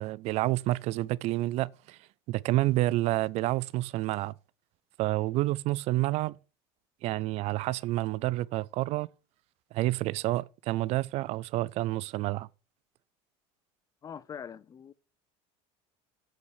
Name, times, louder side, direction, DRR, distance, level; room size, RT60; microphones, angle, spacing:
voice 1, 0.0-2.0 2.3-4.3 5.0-6.4 7.0-9.1 9.7-12.5, right 17 dB, 55° right, 0.4 m, -29 dB
voice 2, 14.0-14.9, left 7 dB, 30° left, 0.5 m, -43 dB
8.5 x 7.2 x 4.7 m
supercardioid pair, 120°, 13 cm